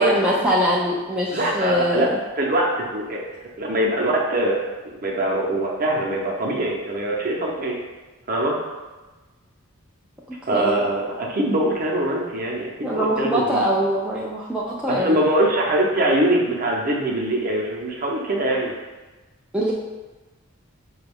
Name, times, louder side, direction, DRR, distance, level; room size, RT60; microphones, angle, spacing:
voice 1, 0.0-2.2 10.5-10.8 12.8-15.2 19.5-19.7, equal, 5° right, -6 dB, 0.3 m, -22 dB
voice 2, 1.3-2.1 2.4-3.2 3.6-4.6 5.0-7.8 8.3-8.6 10.5-13.6 14.9-18.7, right 1 dB, 40° right, -2 dB, 0.7 m, -23 dB
5.1 x 2.3 x 3.4 m, 1.2 s
head